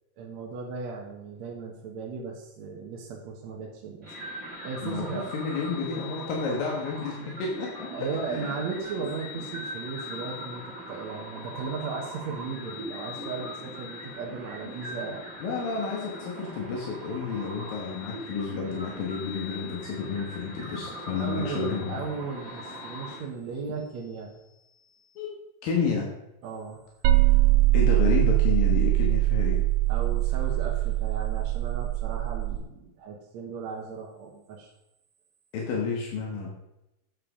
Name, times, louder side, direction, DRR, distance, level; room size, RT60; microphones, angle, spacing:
voice 1, 0.2-4.1 4.6-5.3 7.9-15.3 21.2-25.2 26.4-26.8 29.9-34.7, right 5 dB, 60° right, -1 dB, 2.2 m, -36 dB
sound 1, 4.0-23.2, left 1 dB, 25° right, 2.8 m, -40 dB
voice 2, 4.8-7.9 8.3-8.5 15.4-22.0 22.5-23.1 25.2-25.3 25.6-26.1 27.7-29.6 35.5-36.5, left 5 dB, 80° left, -1 dB, 3.2 m, -31 dB
sound 2, 27.0-32.6, right 16 dB, 85° right, 2.3 m, -22 dB
9.3 x 7.6 x 5.0 m, 0.92 s
omnidirectional pair, 4.0 m